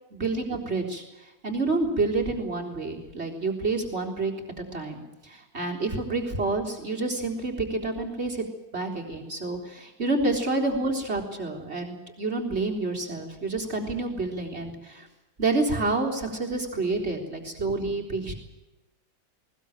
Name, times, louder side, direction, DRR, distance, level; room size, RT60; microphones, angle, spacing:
voice 1, 0.1-1.0 1.4-4.3 4.7-8.4 8.7-15.1 15.4-18.3, right 3 dB, 45° right, 1 dB, 4.2 m, -28 dB
20.5 x 19.5 x 9.1 m, 1.0 s
omnidirectional pair, 1.6 m